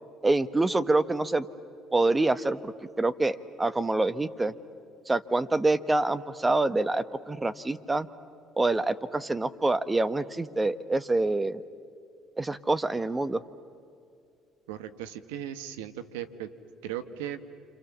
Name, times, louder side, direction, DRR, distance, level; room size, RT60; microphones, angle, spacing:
voice 1, 0.2-1.5 1.9-4.5 5.1-8.1 8.6-11.6 12.4-13.4, right 2 dB, 20° right, 13 dB, 1.2 m, -26 dB
voice 2, 14.7-16.5 16.8-17.4, right 11 dB, 90° right, 11 dB, 1.3 m, -37 dB
28.5 x 26.5 x 7.3 m, 2.4 s
supercardioid pair, 70°, 0 cm